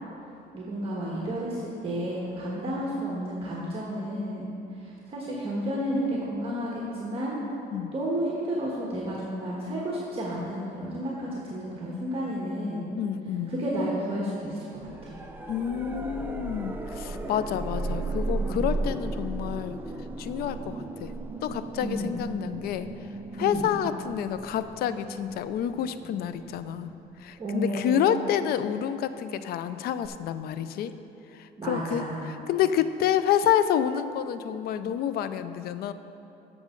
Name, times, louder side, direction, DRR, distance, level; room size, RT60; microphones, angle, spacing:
voice 1, 0.5-4.5 4.7-7.4 7.9-12.9 13.5-15.2 18.4-18.8 21.8-22.3 23.4-23.6 27.4-28.2 31.6-32.3, equal, 35° right, -4 dB, 1.5 m, -31 dB
voice 2, 13.0-13.6 15.5-19.8 20.2-21.1 21.4-22.9 23.3-26.9 27.2-30.9 31.3-35.9, left 9 dB, 65° left, 12 dB, 0.5 m, -28 dB
sound 1, 14.8-27.7 30.0-30.1, right 2 dB, 10° right, 0.6 m, -36 dB
13.5 x 6.2 x 3.8 m, 2.9 s
cardioid pair, 110°, 17 cm